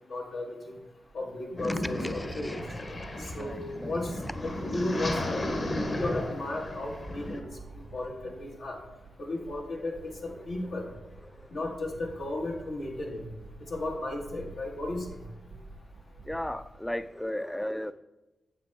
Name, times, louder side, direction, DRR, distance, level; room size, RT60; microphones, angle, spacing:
voice 1, 0.1-0.8 1.1-2.6 3.2-4.1 4.4-5.5 5.9-7.4 7.9-8.8 9.2-10.9 11.5-13.2 13.7-15.2, left 2 dB, 80° left, -4 dB, 1.2 m, -34 dB
sound 1, 1.1-17.1, right 3 dB, 85° right, 1.3 m, -49 dB
sound 2, 1.6-7.4, left 1 dB, 50° left, 1.1 m, -34 dB
voice 2, 2.0-2.6 3.4-3.9 10.3-10.5 11.3-11.5 16.2-17.9, left 1 dB, 10° left, 14 dB, 0.3 m, -36 dB
7.8 x 7.1 x 2.3 m, 1.0 s
supercardioid pair, 45°, 0 cm